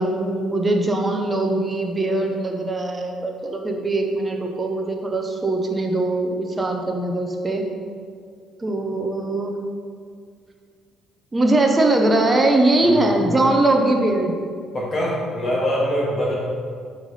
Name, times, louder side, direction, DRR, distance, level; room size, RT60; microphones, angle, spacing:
voice 1, 0.0-7.6 8.6-9.6 11.3-14.3, right 2 dB, 15° right, 2 dB, 0.6 m, -21 dB
voice 2, 12.8-13.2 14.7-16.4, equal, 30° left, -6 dB, 1.4 m, -23 dB
7.7 x 3.3 x 5.3 m, 2.1 s
cardioid pair, 160°, 0 cm